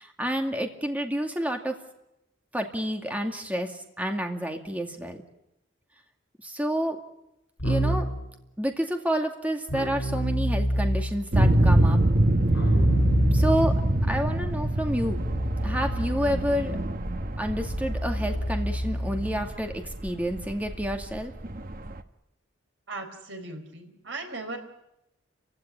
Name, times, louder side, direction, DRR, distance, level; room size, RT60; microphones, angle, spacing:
voice 1, 0.0-1.8 2.5-5.2 6.4-7.0 7.6-8.1 8.6-12.0 13.3-13.8 14.0-15.3 15.6-16.8 17.4-21.3, equal, 10° right, 4 dB, 2.3 m, -29 dB
Keyboard (musical), 7.6-8.2 9.7-11.3 12.5-19.5, equal, 80° left, 6.6 m, -28 dB
sound 1, 11.3-22.0, right 1 dB, 45° right, 1.1 m, -25 dB
voice 2, 22.9-24.6, right 2 dB, 65° right, 6 dB, 4.5 m, -37 dB
29.5 x 16.0 x 9.7 m, 0.88 s
head